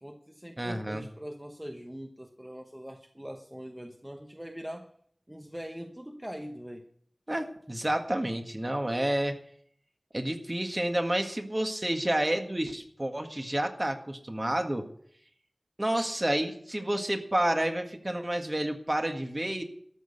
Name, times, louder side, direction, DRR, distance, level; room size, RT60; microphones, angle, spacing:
voice 1, 0.0-4.9 5.3-6.9, equal, 10° right, 1.0 m, -42 dB
voice 2, 0.6-1.1 7.3-9.4 10.1-14.9 15.8-19.6, right 1 dB, 30° right, 1.7 m, -30 dB
13.5 x 6.4 x 9.5 m
wide cardioid pair, 60°, 0 cm